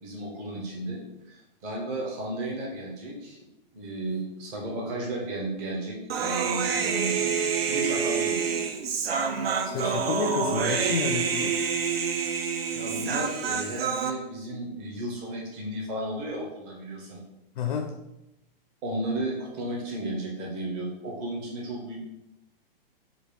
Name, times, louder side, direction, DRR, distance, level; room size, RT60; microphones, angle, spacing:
voice 1, 0.0-3.4 3.7-7.3 7.7-8.5 12.7-17.2 18.8-22.0, right 1 dB, 15° right, -1 dB, 0.5 m, -34 dB
Human voice, 6.1-14.1, right 6 dB, 85° right, 0.7 m, -27 dB
voice 2, 9.6-11.6 17.6-17.9, left 6 dB, 55° left, 3 dB, 0.6 m, -30 dB
5.2 x 2.2 x 4.5 m, 0.88 s
hypercardioid pair, 170°, 29 cm